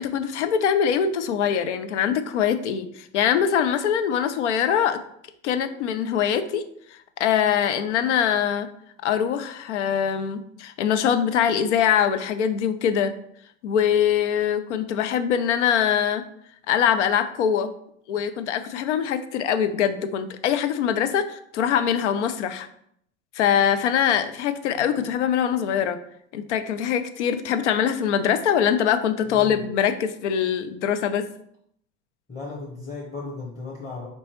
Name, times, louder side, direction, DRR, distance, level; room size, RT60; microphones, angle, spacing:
voice 1, 0.0-5.0 5.4-6.6 7.2-8.7 9.0-13.1 13.6-16.2 16.7-17.7 18.1-22.7 23.4-26.0 26.3-31.2, left 8 dB, 85° left, 9 dB, 0.5 m, -23 dB
voice 2, 29.3-29.6 32.3-34.1, left 3 dB, 20° left, -3 dB, 1.0 m, -36 dB
4.4 x 3.0 x 2.9 m, 0.69 s
hypercardioid pair, 85°, 34 cm